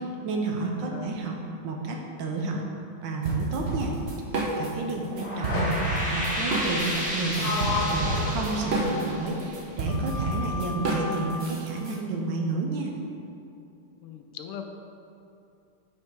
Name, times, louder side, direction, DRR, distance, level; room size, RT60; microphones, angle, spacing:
voice 1, 0.0-1.4 1.6-2.6 3.0-3.9 4.6-12.9, right 3 dB, 70° right, 1 dB, 1.3 m, -31 dB
sound 1, 3.2-4.9 5.2-12.0, right 2 dB, 45° right, 0.8 m, -29 dB
sound 2, 5.0-10.2, equal, 5° right, 0.6 m, -32 dB
Sliding door, 5.5-5.9 6.9-9.4 9.9-11.3, left 3 dB, 60° left, 1.1 m, -33 dB
voice 2, 14.0-14.6, left 9 dB, 85° left, 5 dB, 1.5 m, -40 dB
6.3 x 5.7 x 4.6 m, 2.6 s
omnidirectional pair, 2.4 m